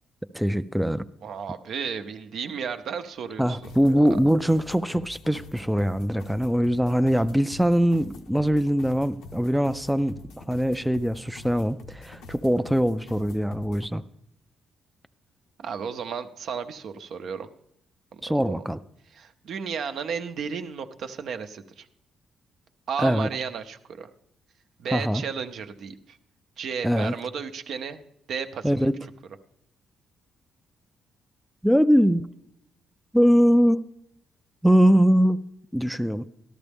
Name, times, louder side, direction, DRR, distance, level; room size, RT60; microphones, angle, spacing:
voice 1, 0.3-1.0 3.4-14.0 18.2-18.8 23.0-23.3 24.9-25.2 26.8-27.1 28.6-28.9 31.6-32.2 33.1-33.9 34.6-35.4 35.7-36.2, equal, ahead, 10 dB, 0.3 m, -22 dB
voice 2, 1.2-4.2 6.9-7.0 15.6-17.5 18.1-18.6 19.1-21.9 22.9-24.1 24.8-26.2 26.6-28.0 28.3-28.7, right 6 dB, 65° right, 8 dB, 0.7 m, -34 dB
sound 1, 3.6-13.9, left 4 dB, 85° left, 0.8 m, -46 dB
13.0 x 12.0 x 3.5 m, 0.79 s
cardioid pair, 90°, 0 cm